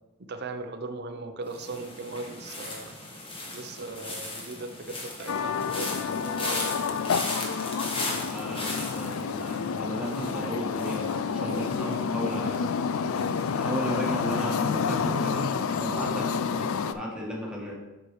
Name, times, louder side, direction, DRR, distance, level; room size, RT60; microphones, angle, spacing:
voice 1, 0.3-2.9 3.5-6.7 16.0-16.4, right 3 dB, 50° right, 7 dB, 0.7 m, -38 dB
sound 1, 1.5-14.5 14.8-15.2, left 2 dB, 25° left, 1.2 m, -38 dB
Guitar, 5.2-8.0, right 1 dB, 65° right, 1.4 m, -51 dB
sound 2, 5.3-16.9, left 6 dB, 70° left, 0.4 m, -29 dB
voice 2, 8.2-12.7 13.5-17.7, equal, 5° right, -4 dB, 1.4 m, -35 dB
7.7 x 6.2 x 3.2 m, 1.1 s
head